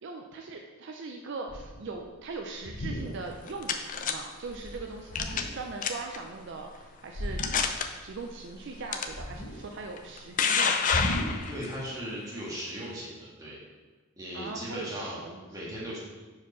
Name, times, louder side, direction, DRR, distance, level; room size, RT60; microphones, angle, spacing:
voice 1, 0.0-7.4 8.0-10.9 14.3-15.5, right 3 dB, 55° right, 2 dB, 0.4 m, -40 dB
sound 1, 1.5-1.9 2.5-3.5 3.9-4.1 4.4-5.7 7.1-8.0 8.2-9.9 10.9-11.5, equal, 85° left, 1.1 m, -36 dB
sound 2, 3.2-4.1 5.2-5.5 5.8-6.2 6.8-6.9 7.4-7.8 8.9-9.0 10.0-11.7, left 6 dB, 40° left, 0.4 m, -27 dB
voice 2, 11.4-13.6 14.2-15.2 15.5-16.0, equal, 15° right, -6 dB, 1.6 m, -37 dB
4.9 x 4.6 x 5.5 m, 1.3 s
head